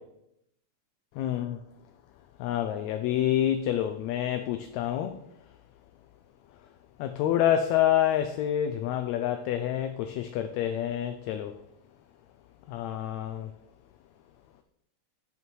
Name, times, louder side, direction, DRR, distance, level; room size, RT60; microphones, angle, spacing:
voice 1, 1.2-1.6 2.4-5.1 7.0-11.5 12.7-13.5, left 11 dB, 80° left, 1.7 m, -27 dB
7.7 x 5.7 x 4.7 m
omnidirectional pair, 3.4 m